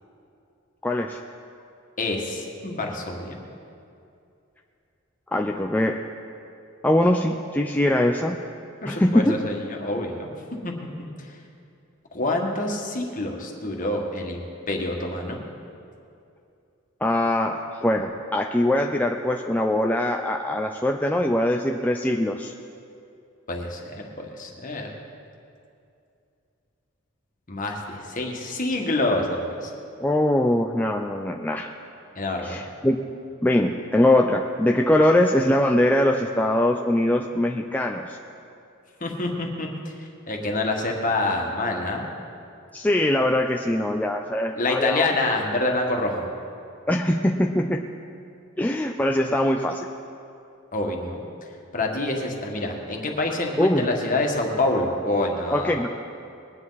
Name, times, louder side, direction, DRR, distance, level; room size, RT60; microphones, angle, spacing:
voice 1, 0.8-1.2 5.3-6.0 6.8-8.4 8.9-9.4 17.0-22.5 30.0-31.7 32.4-33.0 33.4-38.2 42.7-45.1 46.9-47.8 48.6-49.9 53.6-53.9 55.5-55.9, left 1 dB, 10° left, 2 dB, 0.4 m, -22 dB
voice 2, 2.0-3.4 8.8-10.3 10.6-10.7 12.1-15.4 23.5-24.9 27.5-29.7 32.1-32.6 39.0-39.7 40.3-42.1 44.6-46.3 50.7-51.2 51.7-55.8, left 2 dB, 40° left, 1 dB, 1.7 m, -27 dB
21.0 x 9.9 x 4.1 m, 2.6 s
head